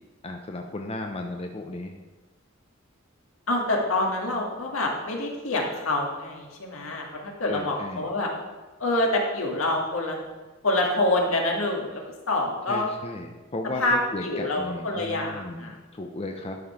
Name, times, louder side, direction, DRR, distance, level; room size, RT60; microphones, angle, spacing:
voice 1, 0.2-2.0 7.5-8.1 12.7-16.6, left 2 dB, 30° left, 3 dB, 0.7 m, -35 dB
voice 2, 3.5-8.3 8.8-10.2 10.6-12.9 13.8-15.7, left 2 dB, 75° left, 0 dB, 2.1 m, -26 dB
11.5 x 5.4 x 5.9 m, 1.2 s
head